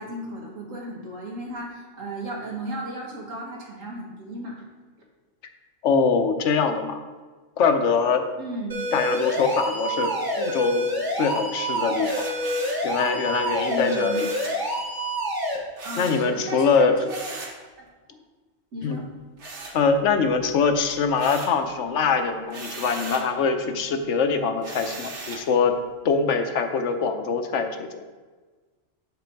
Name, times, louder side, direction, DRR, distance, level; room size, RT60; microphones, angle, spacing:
voice 1, 0.0-4.6 8.4-8.9 13.7-14.2 15.8-17.3 17.8-17.9 18.7-19.1, right 1 dB, 80° right, -1 dB, 1.9 m, -34 dB
voice 2, 5.8-7.0 7.6-8.2 8.9-10.1 10.4-10.9 11.2-12.3 12.8-14.3 16.0-16.9 18.8-19.0 19.7-25.7 26.0-28.0, left 5 dB, 70° left, 7 dB, 1.0 m, -23 dB
sound 1, 8.7-15.6, equal, 20° right, 1.3 m, -27 dB
sound 2, 12.0-12.9 14.1-14.6 15.8-16.2 17.1-17.6 19.4-20.2 20.6-21.6 22.5-23.3 24.6-25.5, right 3 dB, 65° right, 1.5 m, -38 dB
7.7 x 5.0 x 4.5 m, 1.3 s
omnidirectional pair, 1.3 m